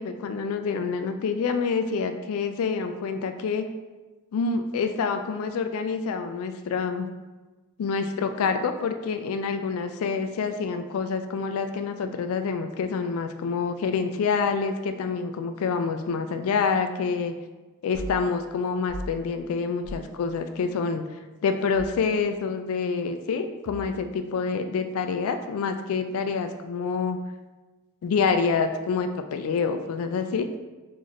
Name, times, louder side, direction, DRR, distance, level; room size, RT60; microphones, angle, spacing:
voice 1, 0.0-3.7 4.3-7.1 7.8-17.3 17.8-21.1 21.4-27.2 28.0-30.5, left 5 dB, 75° left, 8 dB, 0.3 m, -27 dB
sound 1, 17.9-18.2 18.9-19.1 19.8-20.1 21.7-22.1 23.7-24.2, equal, 55° right, 0.5 m, -38 dB
3.0 x 2.5 x 3.9 m, 1.2 s
head